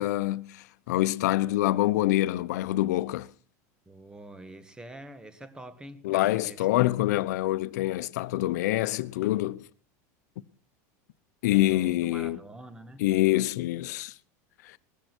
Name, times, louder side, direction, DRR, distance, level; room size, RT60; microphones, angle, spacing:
voice 1, 0.0-3.3 6.0-9.7 11.4-12.4 13.0-14.1 14.6-14.8, left 16 dB, 80° left, 0.8 m, -26 dB
voice 2, 3.8-6.7 11.5-13.1, right 1 dB, 10° right, 1.4 m, -46 dB
19.5 x 14.5 x 4.5 m
supercardioid pair, 145°, 9 cm